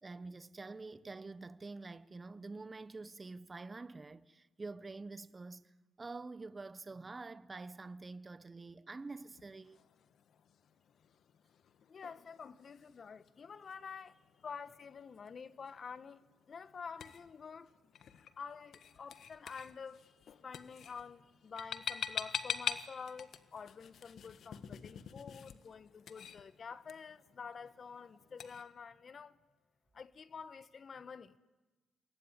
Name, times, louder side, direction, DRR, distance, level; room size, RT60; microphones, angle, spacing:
voice 1, 0.0-9.8, right 3 dB, 25° right, 0.9 m, -47 dB
sound 1, 9.2-28.6, left 8 dB, 65° left, 1.6 m, -47 dB
voice 2, 11.9-17.9 18.4-29.4 29.9-31.3, left 6 dB, 45° left, 1.3 m, -49 dB
28.5 x 21.5 x 9.8 m
cardioid pair, 90°, 0 cm